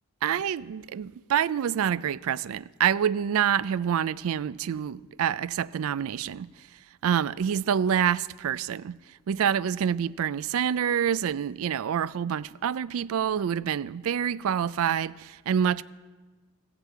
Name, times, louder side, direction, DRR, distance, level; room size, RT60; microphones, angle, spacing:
voice 1, 0.2-6.5 7.0-8.9 9.3-15.8, right 8 dB, 65° right, 0.3 m, -27 dB
16.5 x 5.8 x 8.1 m
head